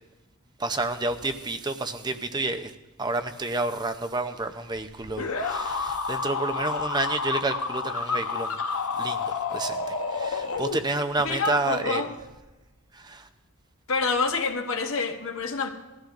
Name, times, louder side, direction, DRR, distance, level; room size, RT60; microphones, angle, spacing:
voice 1, 0.6-8.6 9.0-12.1 12.9-13.3, right 2 dB, 20° right, 0.7 m, -30 dB
sound 1, 5.2-11.2, left 4 dB, 85° left, 1.0 m, -30 dB
voice 2, 11.2-12.1 13.9-15.7, left 4 dB, 65° left, 1.2 m, -27 dB
21.0 x 14.5 x 2.6 m
head